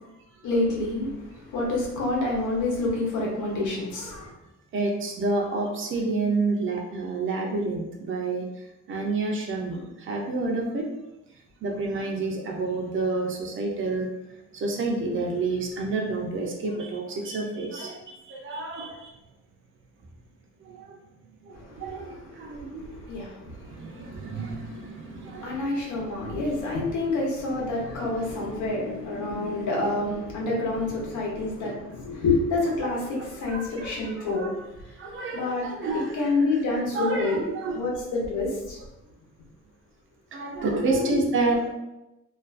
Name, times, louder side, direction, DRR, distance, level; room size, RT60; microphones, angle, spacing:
voice 1, 0.4-1.1 1.5-4.3 21.7-21.8 22.2-22.3 23.1-23.5 24.0-24.9 25.3-34.5 35.3-35.6 35.9-37.4 37.7-38.8 40.7-41.3, left 2 dB, 85° left, -3 dB, 0.8 m, -28 dB
voice 2, 4.7-8.5 8.9-10.9 11.6-14.1 14.5-19.1 20.6-21.0 21.5-22.9 23.4-25.6 25.9-26.5 28.4-28.5 32.8-32.9 33.5-34.5 35.0-36.1 36.9-37.8 40.3-41.7, right 3 dB, 45° right, 0 dB, 0.4 m, -29 dB
2.4 x 2.2 x 2.4 m, 0.94 s
cardioid pair, 170°, 29 cm